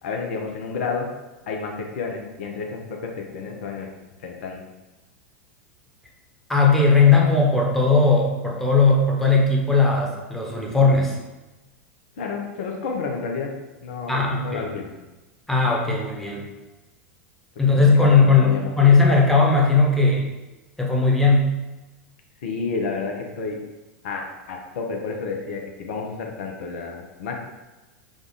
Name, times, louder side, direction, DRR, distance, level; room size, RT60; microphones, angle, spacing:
voice 1, 0.0-1.1 1.5-3.9 4.2-4.6 12.2-13.5 13.8-14.9 17.7-18.7 22.4-23.6 24.0-27.4, left 4 dB, 65° left, 2 dB, 0.8 m, -30 dB
voice 2, 6.5-11.2 14.1-14.7 15.5-16.5 17.6-20.3 20.8-21.5, left 4 dB, 5° left, -2 dB, 1.0 m, -18 dB
5.0 x 2.4 x 4.0 m, 1.1 s
hypercardioid pair, 90°, 7 cm